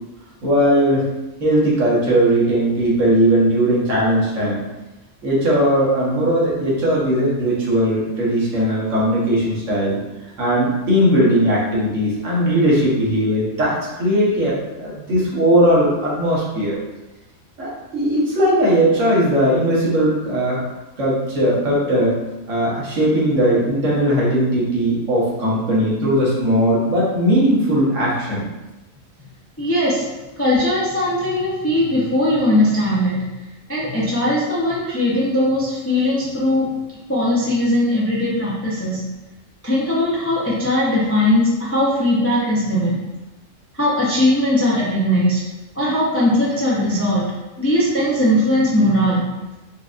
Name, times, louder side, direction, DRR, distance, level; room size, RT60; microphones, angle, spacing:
voice 1, 0.4-1.1 1.4-4.6 5.2-10.0 10.4-16.8 17.6-20.6 21.0-22.2 22.5-28.4, equal, 70° right, -6 dB, 1.4 m, -18 dB
voice 2, 29.6-30.1 30.4-33.2 33.7-36.7 37.1-39.0 39.6-43.0 43.7-45.4 45.7-47.3 47.6-49.3, left 1 dB, 20° left, -7 dB, 0.4 m, -19 dB
4.6 x 2.5 x 2.4 m, 1.1 s
omnidirectional pair, 1.4 m